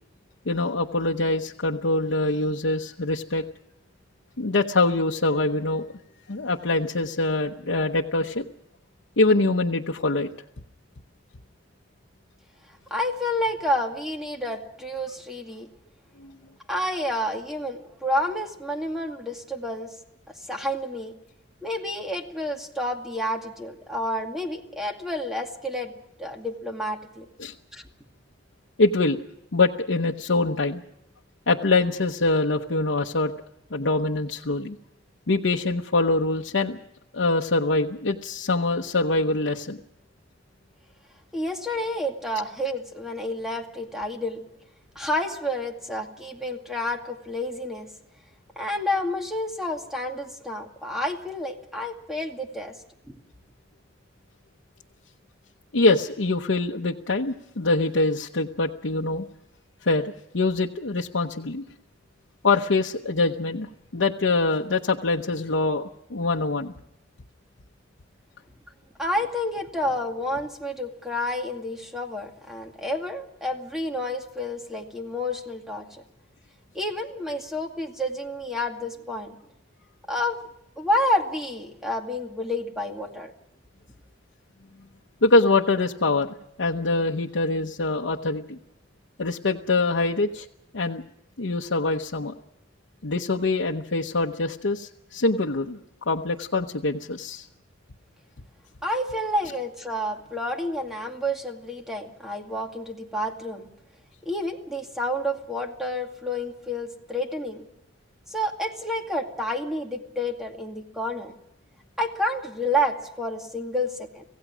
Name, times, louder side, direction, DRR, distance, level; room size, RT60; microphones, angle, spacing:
voice 1, 0.5-3.4 4.4-5.9 6.3-8.5 9.2-10.3 16.2-16.3 27.4-27.5 28.8-29.2 29.5-30.8 31.5-33.3 33.7-34.8 35.3-36.8 37.1-39.8 55.7-59.3 59.9-61.6 62.4-65.8 66.1-66.7 85.2-88.6 89.2-90.5 90.7-91.0 91.4-92.3 93.0-95.8 96.1-97.5, left 3 dB, 80° left, 0 dB, 0.9 m, -24 dB
voice 2, 12.9-15.7 16.7-19.9 20.5-21.1 21.6-25.9 26.2-27.3 27.7-27.8 41.3-44.4 45.0-47.9 48.6-52.8 53.1-53.2 69.0-75.9 76.7-79.4 80.1-80.5 80.8-83.3 98.8-103.7 104.3-107.6 108.3-111.3 112.0-114.2, left 1 dB, 5° right, 2 dB, 2.3 m, -29 dB
26.0 x 16.5 x 6.2 m, 0.84 s
head